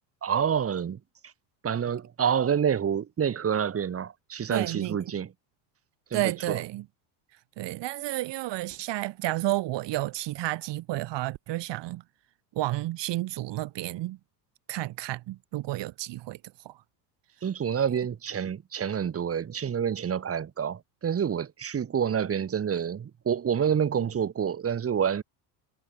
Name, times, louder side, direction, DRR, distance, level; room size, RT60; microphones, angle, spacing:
voice 1, 0.2-1.0 1.6-5.3 6.1-6.6 17.4-25.2, right 8 dB, 25° right, 2.1 m, -28 dB
voice 2, 4.5-5.0 6.1-6.8 7.6-12.0 12.5-14.2 14.7-16.4 16.6-16.8, right 17 dB, 55° right, 4.8 m, -31 dB
cardioid pair, 125°, 50 cm